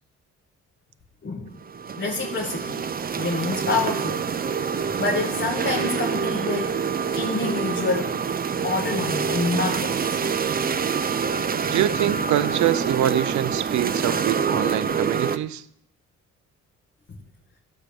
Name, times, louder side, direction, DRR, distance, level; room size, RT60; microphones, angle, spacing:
voice 1, 1.2-1.6 2.0-2.8 3.2-4.3 4.7-6.8 7.1-8.2 8.6-10.2 17.1-17.2, left 3 dB, 40° left, 1.7 m, -27 dB
sound 1, 1.6-15.4, right 6 dB, 30° right, 0.7 m, -26 dB
voice 2, 11.7-15.6, right 12 dB, 70° right, 0.7 m, -24 dB
13.0 x 6.8 x 6.9 m
cardioid pair, 90°, 30 cm